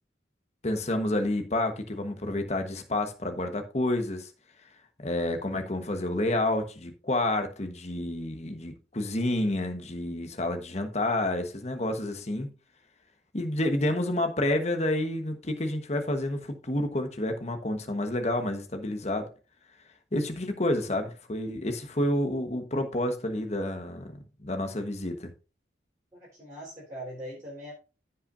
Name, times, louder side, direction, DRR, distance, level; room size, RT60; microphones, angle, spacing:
voice 1, 0.6-4.3 5.0-12.5 13.3-19.3 20.1-24.1 24.4-25.3, left 1 dB, 35° left, 1.2 m, -29 dB
voice 2, 26.1-27.7, equal, 15° right, 3.7 m, -41 dB
15.5 x 5.7 x 2.6 m
head